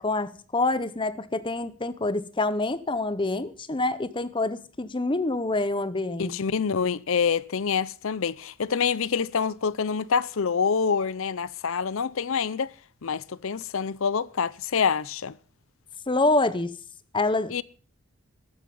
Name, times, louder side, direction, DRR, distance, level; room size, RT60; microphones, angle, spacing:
voice 1, 0.0-6.3 16.1-16.7 17.1-17.5, left 2 dB, 20° left, 0.7 m, -26 dB
voice 2, 6.2-12.7 13.0-15.3 17.5-17.6, left 6 dB, 65° left, 0.6 m, -26 dB
13.5 x 12.5 x 5.4 m
head